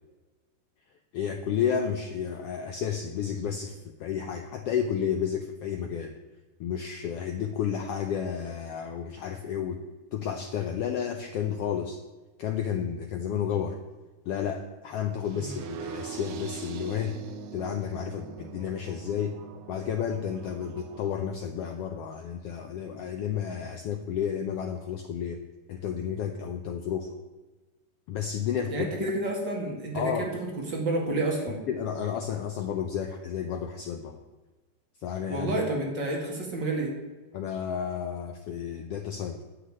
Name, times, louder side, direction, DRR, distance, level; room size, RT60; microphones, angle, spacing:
voice 1, 1.1-6.2 6.6-9.8 10.1-12.0 12.4-13.8 14.3-17.2 17.5-19.3 19.7-25.4 25.7-27.1 28.1-29.1 29.9-30.3 31.7-34.2 35.0-35.5 37.3-39.4, left 8 dB, 85° left, 6 dB, 1.3 m, -31 dB
sound 1, 15.3-21.2, right 7 dB, 70° right, 1.4 m, -42 dB
voice 2, 28.7-31.6 35.3-36.9, right 2 dB, 40° right, -1 dB, 2.5 m, -30 dB
9.7 x 6.6 x 8.7 m, 1.2 s
omnidirectional pair, 3.6 m